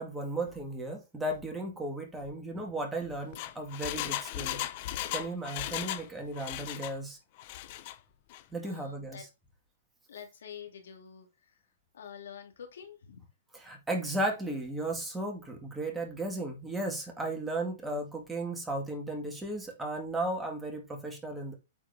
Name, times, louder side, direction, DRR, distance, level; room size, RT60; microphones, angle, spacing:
voice 1, 0.0-4.6 5.1-7.2 8.5-9.3 13.5-21.5, right 1 dB, 5° right, 2.0 m, -35 dB
Engine, 3.1-6.1 6.3-7.0 7.4-7.9 8.3-8.4, left 14 dB, 45° left, 0.7 m, -36 dB
voice 2, 8.6-9.2 10.1-11.3 11.9-13.2, left 8 dB, 80° left, 2.5 m, -47 dB
8.7 x 4.6 x 3.6 m
hypercardioid pair, 150°, 0 cm